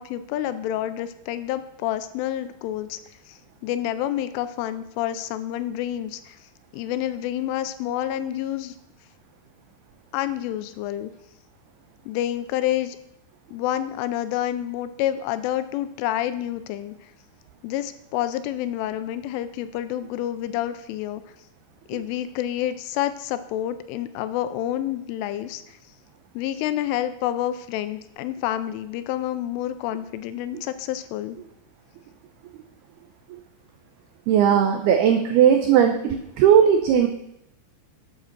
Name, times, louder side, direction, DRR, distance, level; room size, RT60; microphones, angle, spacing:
voice 1, 0.0-3.0 3.3-6.4 6.7-8.7 10.1-11.1 12.1-13.0 13.5-16.9 17.6-21.2 21.9-25.8 26.3-31.4, left 12 dB, 85° left, 12 dB, 3.1 m, -28 dB
voice 2, 34.3-37.1, right 8 dB, 90° right, 6 dB, 2.2 m, -18 dB
12.5 x 8.7 x 5.9 m, 0.81 s
omnidirectional pair, 5.7 m